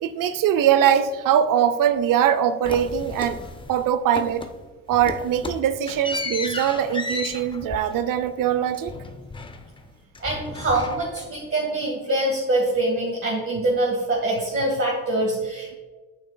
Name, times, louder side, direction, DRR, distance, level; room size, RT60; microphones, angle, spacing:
voice 1, 0.0-3.4 3.7-4.5 4.9-8.9, right 9 dB, 50° right, 13 dB, 0.6 m, -22 dB
sound 1, 2.6-3.9 4.1-4.6 4.9-9.9 10.1-11.4, left 3 dB, 15° left, 0.5 m, -34 dB
voice 2, 10.2-15.8, right 1 dB, 30° right, -3 dB, 1.8 m, -24 dB
8.7 x 6.2 x 2.3 m, 1.3 s
supercardioid pair, 70°, 41 cm